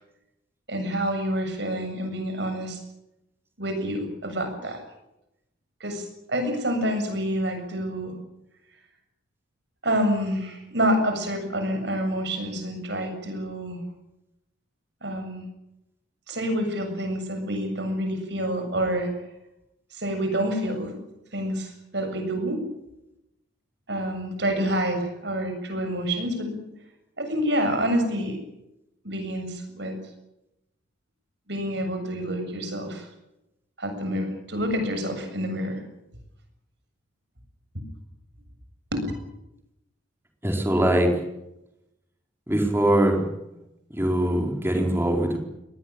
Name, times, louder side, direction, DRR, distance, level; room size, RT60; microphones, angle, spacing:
voice 1, 0.7-2.8 3.6-4.8 5.8-8.1 9.8-13.8 15.0-15.5 16.3-19.1 19.9-21.0 21.3-22.6 23.9-26.6 27.2-28.4 29.0-29.9 31.5-33.1 33.8-35.8 37.7-37.8 38.9-39.0, equal, 60° right, 6 dB, 7.5 m, -28 dB
voice 2, 40.4-41.1 42.5-43.2 43.5-43.6 43.9-45.4, right 1 dB, 10° right, 2 dB, 4.3 m, -22 dB
24.0 x 19.5 x 8.9 m, 0.89 s
head